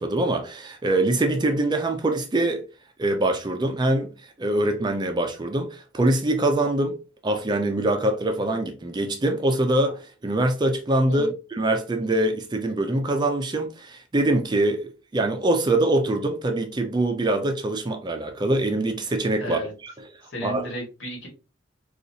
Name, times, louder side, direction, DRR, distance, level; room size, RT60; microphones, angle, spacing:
voice 1, 0.0-2.6 3.0-7.0 7.2-19.9 20.4-20.7, right 1 dB, 20° right, 0.4 m, -24 dB
voice 2, 19.4-19.7 20.3-21.3, equal, 65° left, 1.6 m, -33 dB
3.9 x 2.4 x 2.7 m
head